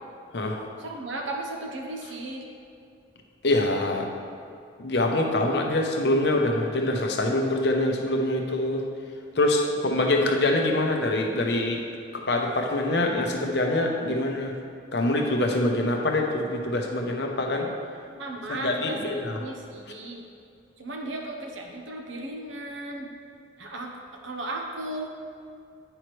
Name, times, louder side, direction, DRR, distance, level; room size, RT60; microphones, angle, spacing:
voice 1, 0.8-2.5 9.7-9.9 18.2-20.2 20.8-23.1 23.6-23.9 24.2-25.1, right 2 dB, 85° right, 1 dB, 0.9 m, -35 dB
voice 2, 3.4-4.1 4.8-8.8 9.3-11.8 12.1-14.5 14.9-17.7 18.5-19.4, left 1 dB, 60° left, 2 dB, 0.8 m, -25 dB
8.9 x 5.6 x 3.2 m, 2.4 s
head